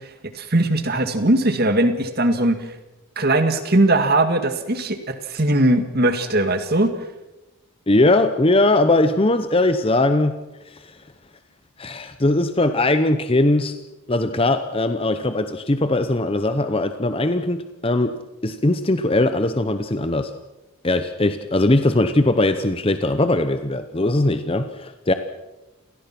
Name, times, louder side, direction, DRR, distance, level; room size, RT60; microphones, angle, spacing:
voice 1, 0.4-2.6 3.2-6.9, right 1 dB, 45° right, 8 dB, 2.0 m, -19 dB
voice 2, 7.9-10.3 10.7-10.9 11.8-13.8 14.1-20.3 20.8-25.1, left 2 dB, 25° left, 9 dB, 0.8 m, -20 dB
29.0 x 17.5 x 6.0 m, 1.0 s
head